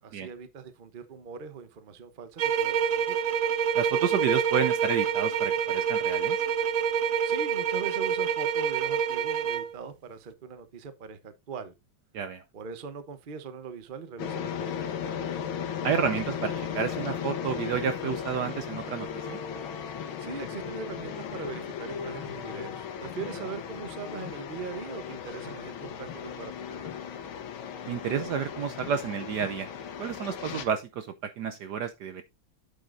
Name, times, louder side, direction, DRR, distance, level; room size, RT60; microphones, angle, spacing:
voice 1, 0.0-3.1 7.2-11.7 12.5-15.2 20.2-27.2, right 5 dB, 40° right, 0.7 m, -41 dB
sound 1, 2.4-9.7, right 7 dB, 90° right, 0.7 m, -27 dB
voice 2, 3.7-6.4 12.1-12.4 15.8-19.4 27.9-29.7 30.0-32.2, right 7 dB, 70° right, 1.0 m, -30 dB
sound 2, 14.2-30.6, left 8 dB, 75° left, 1.8 m, -36 dB
8.6 x 7.6 x 2.6 m
omnidirectional pair, 2.3 m